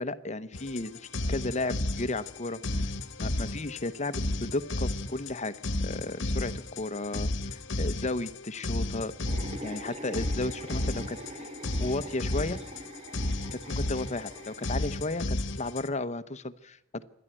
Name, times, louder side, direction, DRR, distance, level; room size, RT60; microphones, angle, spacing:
voice 1, 0.0-2.9 3.2-5.5 5.8-9.1 9.6-11.5 11.8-12.6 13.5-17.0, left 2 dB, 35° left, 13 dB, 0.9 m, -34 dB
sound 1, 0.5-15.9, left 2 dB, 65° left, 1.3 m, -33 dB
sound 2, 9.2-15.0, right 1 dB, 35° right, 2.1 m, -44 dB
27.0 x 11.0 x 9.0 m, 0.85 s
head